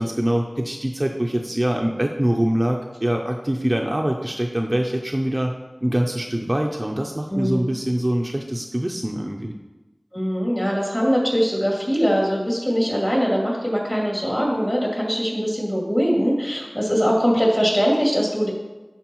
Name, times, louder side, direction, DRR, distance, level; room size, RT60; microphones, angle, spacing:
voice 1, 0.0-5.5 5.8-9.5, right 1 dB, 25° right, 1 dB, 0.5 m, -24 dB
voice 2, 7.3-7.6 10.1-18.5, equal, 20° left, -3 dB, 2.5 m, -21 dB
11.5 x 4.6 x 3.0 m, 1.1 s
wide cardioid pair, 50°, 0 cm